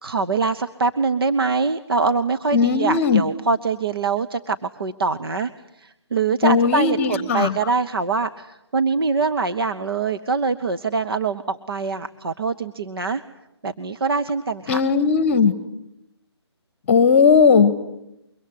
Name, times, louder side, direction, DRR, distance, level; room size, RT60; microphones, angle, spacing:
voice 1, 0.0-5.5 5.8-13.2 13.6-14.8, right 4 dB, 55° right, 8 dB, 1.1 m, -23 dB
voice 2, 2.5-3.2 6.4-7.5 14.7-15.5 16.9-17.7, left 5 dB, 30° left, 15 dB, 1.3 m, -17 dB
25.0 x 23.5 x 9.8 m, 0.85 s
figure-of-eight pair, 150°, 14 cm